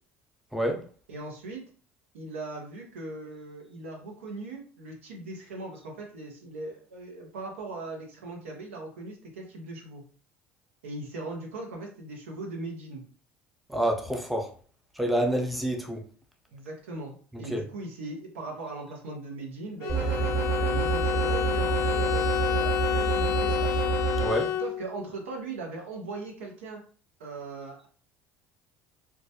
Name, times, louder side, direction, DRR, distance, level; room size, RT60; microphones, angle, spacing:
voice 1, 0.5-0.8 13.7-14.5 14.9-16.0 17.5-17.7 24.2-24.5, equal, ahead, 0.6 m, -27 dB
voice 2, 1.1-1.6 2.1-10.0 10.8-13.0 16.5-24.0 24.6-26.8 27.2-27.9, right 3 dB, 85° right, 0.6 m, -39 dB
Bowed string instrument, 19.8-25.1, left 11 dB, 50° left, 0.3 m, -29 dB
sound 1, 19.9-24.3, right 5 dB, 35° right, 0.9 m, -28 dB
2.2 x 2.0 x 2.7 m
hypercardioid pair, 70°, 7 cm